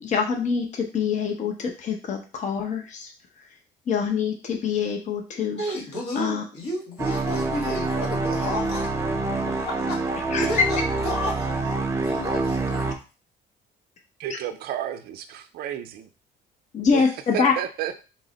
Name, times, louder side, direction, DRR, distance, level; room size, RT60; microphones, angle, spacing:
voice 1, 0.0-3.1 3.9-5.6 6.2-6.4 10.3-10.5 16.7-17.5, left 6 dB, 45° left, 2 dB, 0.8 m, -25 dB
voice 2, 5.5-8.9 9.5-10.0 10.4-12.9, left 1 dB, 75° left, -1 dB, 1.5 m, -32 dB
sound 1, 7.0-12.9, right 3 dB, 15° right, 0.5 m, -26 dB
voice 3, 14.2-16.1 16.9-17.0 17.3-18.0, right 10 dB, 65° right, 9 dB, 0.4 m, -31 dB
4.0 x 2.1 x 3.8 m, 0.33 s
cardioid pair, 110°, 17 cm